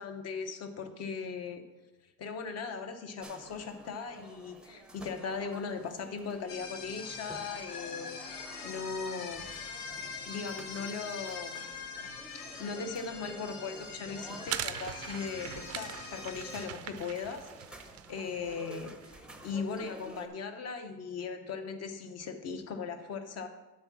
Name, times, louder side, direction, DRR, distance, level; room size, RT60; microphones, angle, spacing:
voice 1, 0.0-1.6 2.2-8.3 8.6-9.5 10.3-11.7 12.6-17.5 18.1-23.5, left 5 dB, 45° left, 7 dB, 1.0 m, -38 dB
sound 1, 3.2-20.3, right 1 dB, 5° right, 0.6 m, -51 dB
sound 2, 6.5-16.7, left 5 dB, 70° left, 1.4 m, -43 dB
sound 3, 14.4-19.4, right 12 dB, 45° right, 0.5 m, -42 dB
7.7 x 4.7 x 7.2 m, 1.1 s
cardioid pair, 140°, 36 cm